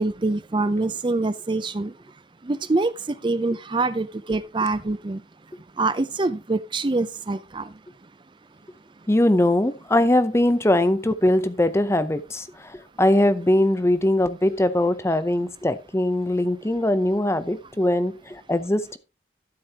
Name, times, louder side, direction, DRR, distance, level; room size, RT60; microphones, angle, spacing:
voice 1, 0.0-1.9 2.5-2.9 3.2-5.2 5.8-7.6, right 3 dB, 25° right, 0.5 m, -25 dB
voice 2, 9.1-19.0, left 1 dB, 15° left, 0.6 m, -21 dB
12.5 x 7.6 x 2.9 m
head